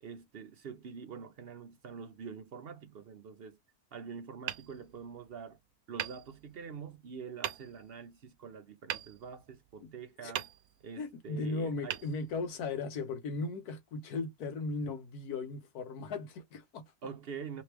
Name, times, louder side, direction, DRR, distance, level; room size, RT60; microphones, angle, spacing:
voice 1, 0.0-3.6 3.9-5.6 5.9-10.5 10.8-12.0 17.0-17.6, right 6 dB, 55° right, 0.7 m, -45 dB
Hammer, 4.4-5.5 6.0-6.9 7.4-8.0 8.9-9.9 10.3-11.1 11.9-12.8, right 11 dB, 75° right, 1.0 m, -41 dB
voice 2, 11.0-16.8, left 3 dB, 80° left, 1.5 m, -37 dB
3.2 x 3.0 x 3.3 m
omnidirectional pair, 1.6 m